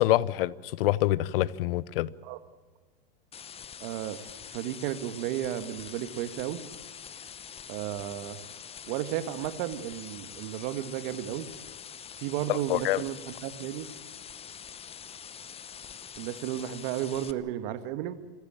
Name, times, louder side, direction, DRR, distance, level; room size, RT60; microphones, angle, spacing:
voice 1, 0.0-2.1 12.5-13.0, left 15 dB, 70° left, 21 dB, 0.9 m, -26 dB
sound 1, 3.3-17.3, left 7 dB, 20° left, 1.0 m, -45 dB
voice 2, 3.8-6.6 7.7-8.4 8.9-11.5 12.2-13.9 16.2-18.2, right 12 dB, 55° right, 12 dB, 1.8 m, -33 dB
26.5 x 15.0 x 8.7 m, 1.5 s
hypercardioid pair, 115°, 29 cm